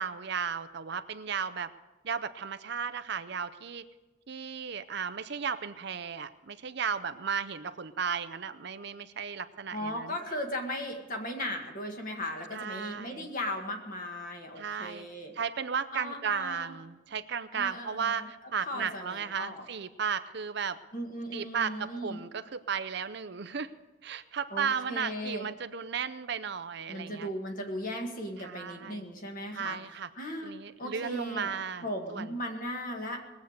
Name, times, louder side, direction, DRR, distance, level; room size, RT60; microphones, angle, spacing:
voice 1, 0.0-1.7 2.0-3.8 4.3-10.4 12.5-13.3 14.6-15.1 15.3-20.8 21.3-23.7 24.0-27.3 28.4-29.0 29.5-30.1 30.4-32.4, right 6 dB, 55° right, 12 dB, 0.6 m, -35 dB
voice 2, 9.7-15.3 15.9-16.8 17.5-18.3 18.7-19.7 20.9-22.2 24.5-25.5 26.9-29.8 30.2-30.5 30.8-31.5 31.8-33.3, equal, 40° left, 3 dB, 1.9 m, -37 dB
20.5 x 8.1 x 6.6 m, 1.2 s
head